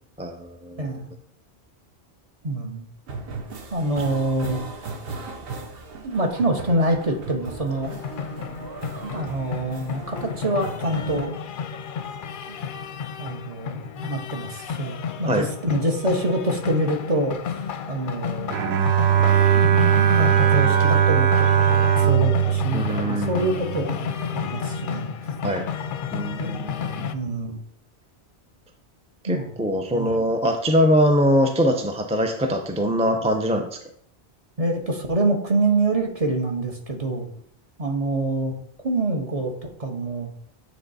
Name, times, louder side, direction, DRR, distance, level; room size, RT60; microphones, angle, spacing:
voice 1, 0.2-1.0 15.3-15.5 22.7-23.7 25.4-25.6 26.1-27.1 29.2-33.8, equal, 10° right, 3 dB, 0.5 m, -23 dB
voice 2, 0.8-1.1 2.4-2.8 3.7-4.7 6.0-7.9 9.0-11.3 12.5-12.6 13.2-18.6 19.5-25.3 26.4-26.6 27.1-27.6 29.2-29.5 29.9-30.2 34.6-37.3 37.8-38.5 38.8-40.3, right 2 dB, 35° right, 2 dB, 1.1 m, -26 dB
sound 1, 3.1-11.3, right 4 dB, 65° right, 1.1 m, -37 dB
sound 2, 7.8-27.1, left 7 dB, 60° left, 0.7 m, -32 dB
Bowed string instrument, 18.5-23.8, right 9 dB, 90° right, 0.9 m, -19 dB
9.3 x 3.5 x 4.1 m, 0.65 s
omnidirectional pair, 1.1 m